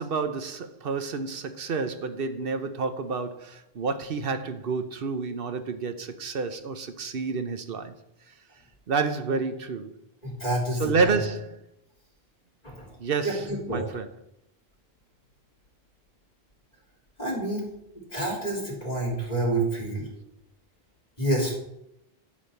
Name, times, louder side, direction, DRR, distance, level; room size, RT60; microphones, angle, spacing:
voice 1, 0.0-7.9 8.9-9.9 10.8-11.6 13.0-14.1, right 4 dB, 65° right, 1.1 m, -29 dB
voice 2, 10.2-11.1 12.6-12.9 13.2-13.9 17.2-17.7 18.1-20.1 21.2-21.5, right 1 dB, 40° left, 3.4 m, -28 dB
11.5 x 5.0 x 7.1 m
omnidirectional pair, 1.0 m